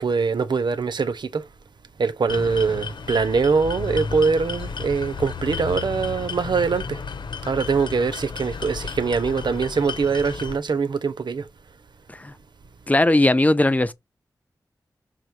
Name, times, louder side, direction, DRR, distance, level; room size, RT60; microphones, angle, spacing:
voice 1, 0.0-1.4 2.0-7.0 7.5-11.4, right 5 dB, 75° right, 1.1 m, -23 dB
sound 1, 2.3-10.6, left 5 dB, 80° left, 1.2 m, -33 dB
voice 2, 12.9-13.9, left 2 dB, 20° left, 0.8 m, -18 dB
6.4 x 4.0 x 4.8 m
cardioid pair, 55°, 8 cm